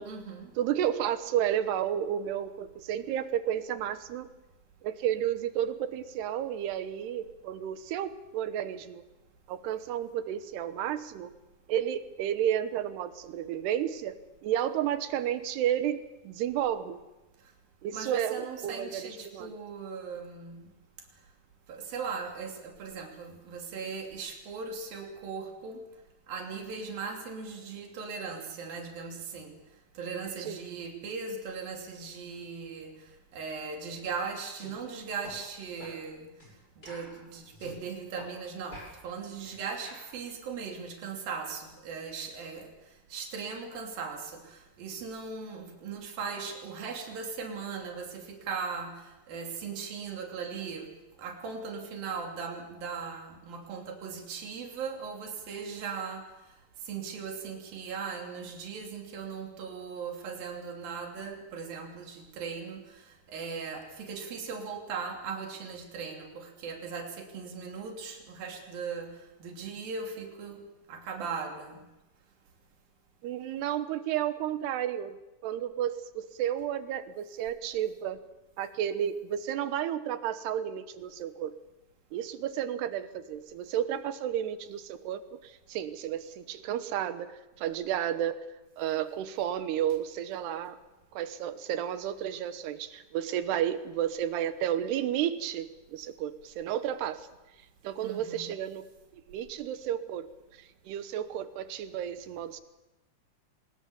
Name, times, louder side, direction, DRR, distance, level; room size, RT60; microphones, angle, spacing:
voice 1, 0.1-0.5 17.9-20.7 21.7-25.8 26.3-29.5 30.0-32.9 33.3-36.3 36.8-42.7 43.1-50.9 51.2-56.3 56.8-69.1 69.4-70.6 70.9-71.9 98.0-98.6, right 5 dB, 65° right, 2 dB, 4.7 m, -38 dB
voice 2, 0.6-4.3 4.8-9.0 9.5-11.3 11.7-14.2 14.4-17.0 17.8-19.5 30.4-30.6 73.2-75.2 75.4-78.2 78.6-81.6 82.1-87.3 87.6-88.4 88.8-90.8 91.1-97.3 97.8-98.9 99.3-100.3 100.6-102.6, right 10 dB, 85° right, 11 dB, 3.2 m, -32 dB
sound 1, 34.5-34.7 35.2-35.4 35.8-36.0 36.4-36.5 36.8-37.8 38.2-38.3 38.7-40.1, left 1 dB, 20° left, 8.2 m, -48 dB
24.0 x 21.0 x 7.0 m, 1.0 s
omnidirectional pair, 4.6 m